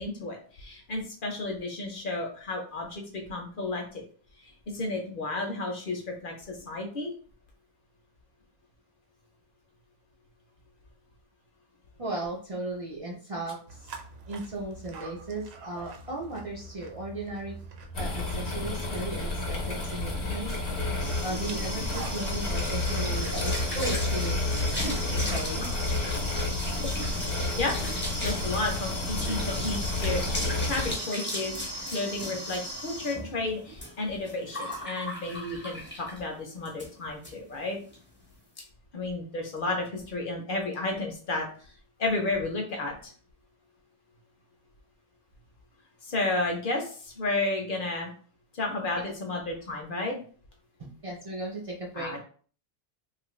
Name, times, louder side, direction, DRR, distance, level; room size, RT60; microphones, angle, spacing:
voice 1, 0.0-4.1 4.4-7.1 26.8-26.9 27.5-37.8 38.9-41.5 42.0-43.1 46.0-48.1 48.5-50.2 52.0-52.2, left 2 dB, 55° left, 1 dB, 0.8 m, -32 dB
voice 2, 12.0-13.9 14.3-17.5 17.9-24.5 25.1-25.7 50.8-52.2, right 2 dB, 40° right, -3 dB, 0.5 m, -36 dB
sound 1, 13.7-28.4, right 4 dB, 80° right, 0.8 m, -47 dB
sound 2, 17.9-30.9, left 2 dB, 75° left, 1.1 m, -31 dB
sound 3, 20.7-36.3 36.7-36.9 37.2-37.3 37.6-38.0, equal, 10° left, 0.6 m, -36 dB
2.8 x 2.4 x 3.0 m, 0.43 s
omnidirectional pair, 1.1 m